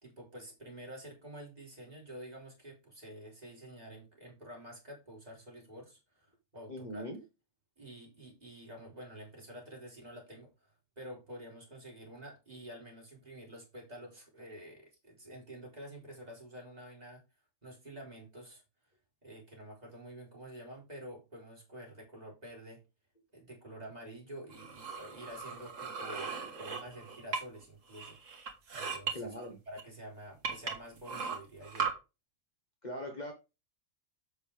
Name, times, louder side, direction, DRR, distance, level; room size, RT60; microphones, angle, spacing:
voice 1, 0.0-7.1 7.8-17.2 17.6-18.6 19.2-22.8 23.3-28.2 28.7-29.4 29.7-31.9, right 1 dB, 30° right, 3.9 m, -49 dB
voice 2, 6.7-7.2 29.1-29.6 32.8-33.3, equal, 35° left, 1.3 m, -40 dB
sound 1, 24.5-27.6 27.9-29.1 29.8-29.9 30.4-31.9, right 5 dB, 65° right, 2.0 m, -38 dB
7.9 x 6.7 x 3.5 m
omnidirectional pair, 1.4 m